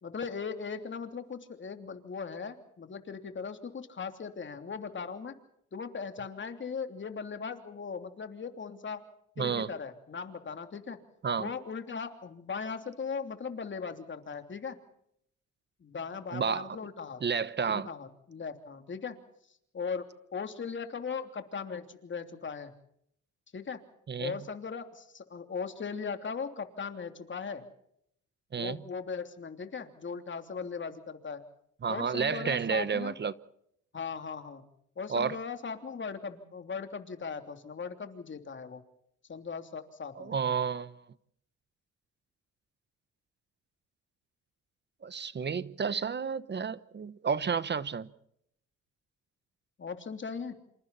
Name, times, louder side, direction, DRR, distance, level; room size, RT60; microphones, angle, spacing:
voice 1, 0.0-5.3 5.7-9.0 9.4-11.0 11.4-14.8 15.8-17.2 17.7-19.2 19.7-20.1 20.3-22.7 23.5-23.8 24.2-27.6 28.6-31.4 31.9-33.1 33.9-34.6 35.0-38.8 39.3-40.3 49.8-50.5, left 5 dB, 40° left, 3.1 m, -38 dB
voice 2, 9.4-9.7 11.2-11.5 16.3-16.8 17.2-17.9 24.1-24.4 28.5-28.8 31.8-33.3 35.1-35.4 40.2-41.0 45.0-48.1, right 6 dB, 35° right, 1.0 m, -31 dB
27.5 x 27.0 x 4.2 m
cardioid pair, 90°, 30 cm